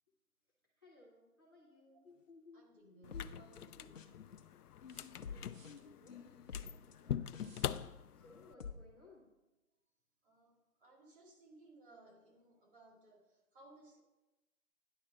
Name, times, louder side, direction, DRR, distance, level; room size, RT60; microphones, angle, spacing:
voice 1, 0.8-2.1 5.2-6.2 6.6-7.5 8.1-9.3, left 2 dB, 15° left, -6 dB, 0.6 m, -63 dB
sound 1, 2.0-4.4 4.8-7.8 8.3-8.7, left 6 dB, 60° left, 0.9 m, -50 dB
voice 2, 2.5-4.1 10.2-14.0, right 2 dB, 35° right, 1 dB, 1.9 m, -62 dB
sound 2, 2.8-2.9 4.9-5.8 7.4-7.8, right 3 dB, 60° right, 1.8 m, -65 dB
sound 3, 3.0-8.5, left 9 dB, 85° left, 0.6 m, -44 dB
10.0 x 4.3 x 6.8 m, 1.0 s
hypercardioid pair, 160°, 45 cm